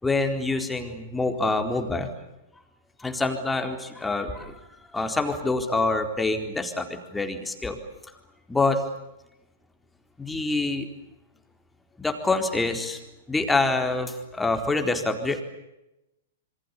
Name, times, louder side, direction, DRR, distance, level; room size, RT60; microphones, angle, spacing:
voice 1, 0.0-2.1 3.0-4.5 4.9-7.8 8.5-8.8 10.2-10.9 12.0-13.0 13.3-15.4, left 3 dB, 10° left, 5 dB, 4.2 m, -26 dB
27.0 x 24.5 x 8.5 m, 0.93 s
figure-of-eight pair, 110°, 0 cm